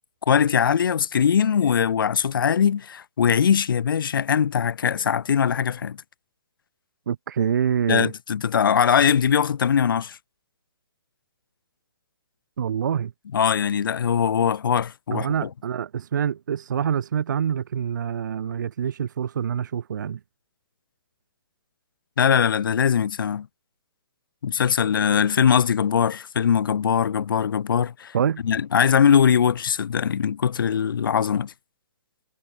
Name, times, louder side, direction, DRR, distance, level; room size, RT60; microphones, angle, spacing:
voice 1, 0.3-6.0 7.9-10.2 13.3-15.5 22.2-23.5 24.4-28.1 28.4-31.5, left 7 dB, 70° left, 0.5 m, -21 dB
voice 2, 7.1-8.1 12.6-13.1 15.1-20.2 28.1-28.4, right 8 dB, 55° right, 0.4 m, -26 dB
hypercardioid pair, 170°, 12 cm